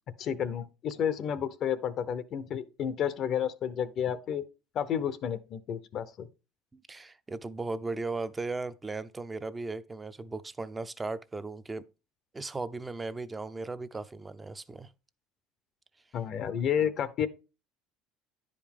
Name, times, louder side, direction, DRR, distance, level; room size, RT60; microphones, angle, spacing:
voice 1, 0.2-4.4 4.7-6.3 16.1-17.3, left 8 dB, 55° left, 0.6 m, -31 dB
voice 2, 6.7-11.8 12.3-14.9, right 3 dB, 15° right, 0.5 m, -37 dB
10.0 x 5.0 x 3.6 m
supercardioid pair, 105°, 0 cm